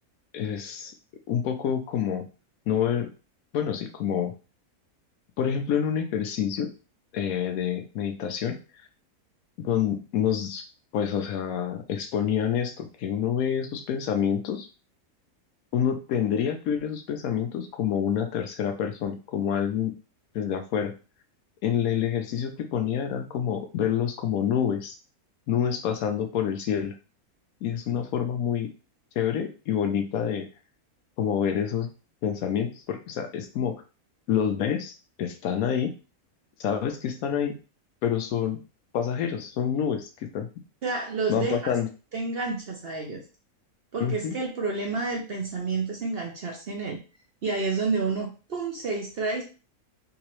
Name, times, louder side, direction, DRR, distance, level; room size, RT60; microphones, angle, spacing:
voice 1, 0.3-0.9 1.3-2.3 2.7-3.1 3.5-4.3 5.4-6.7 7.1-8.6 9.6-10.7 10.9-14.7 15.7-19.9 20.3-21.0 21.6-25.0 25.5-26.9 27.6-28.7 29.2-30.5 31.2-31.9 32.2-33.8 34.3-35.9 36.6-37.5 38.0-38.6 38.9-40.5 41.3-41.9 44.0-44.4, left 8 dB, 75° left, 7 dB, 1.0 m, -27 dB
voice 2, 40.8-41.8 42.1-43.2 43.9-47.0 47.4-49.4, right 4 dB, 50° right, 0 dB, 0.8 m, -29 dB
3.6 x 3.0 x 3.0 m, 0.33 s
omnidirectional pair, 1.6 m